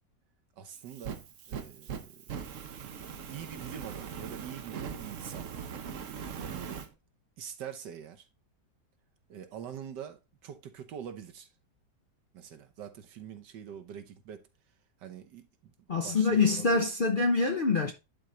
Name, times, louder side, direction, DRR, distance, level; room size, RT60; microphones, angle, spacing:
voice 1, 0.6-2.4 2.8-3.0 3.3-5.5 6.4-7.0 7.4-8.3 9.3-11.5 12.3-14.4 15.0-16.8, right 9 dB, 90° right, 1.7 m, -45 dB
Fire, 0.7-6.9, right 7 dB, 55° right, 1.0 m, -40 dB
voice 2, 15.9-17.9, left 4 dB, 55° left, 0.6 m, -25 dB
11.0 x 3.9 x 3.1 m
omnidirectional pair, 1.8 m